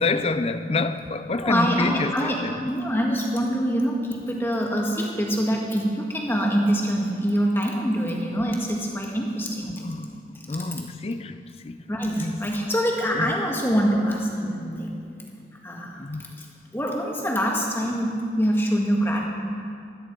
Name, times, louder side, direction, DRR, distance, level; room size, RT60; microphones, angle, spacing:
voice 1, 0.0-2.6 9.7-10.2 10.5-11.4 11.6-11.8 12.1-12.4 13.1-13.3 16.0-16.2, left 3 dB, 30° left, 0.5 m, -27 dB
voice 2, 1.3-9.8 11.9-14.9 15.6-16.0 16.4-16.5 16.7-19.3, equal, 10° left, 1.7 m, -25 dB
17.0 x 13.0 x 4.6 m
head